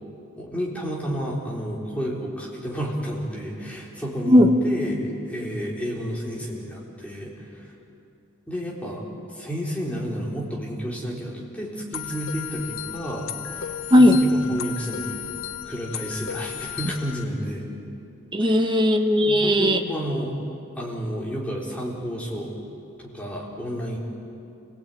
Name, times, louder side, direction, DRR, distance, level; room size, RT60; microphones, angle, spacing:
voice 1, 0.4-7.7 8.5-9.1 9.3-15.2 15.6-17.7 18.4-18.6 19.2-20.4 20.8-22.5 23.0-24.0, equal, 5° left, -4 dB, 3.9 m, -31 dB
voice 2, 4.3-4.6 13.9-14.2 18.3-19.8, left 1 dB, 20° right, 4 dB, 1.3 m, -17 dB
sound 1, 11.9-17.2, left 10 dB, 65° left, 1.0 m, -35 dB
27.5 x 18.5 x 9.2 m, 2.7 s
head